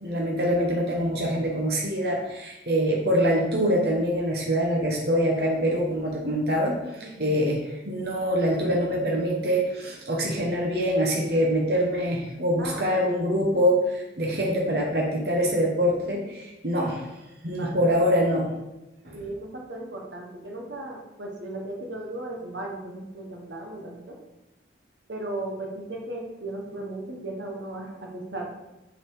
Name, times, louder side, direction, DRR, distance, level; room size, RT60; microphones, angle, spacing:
voice 1, 0.0-17.0 17.4-18.5 19.0-19.2, equal, 60° right, -2 dB, 1.2 m, -24 dB
voice 2, 7.0-7.5 12.6-13.0 17.5-18.0 19.1-24.2 25.1-28.4, right 2 dB, 80° right, 0 dB, 1.3 m, -36 dB
6.9 x 4.2 x 5.0 m, 0.97 s
head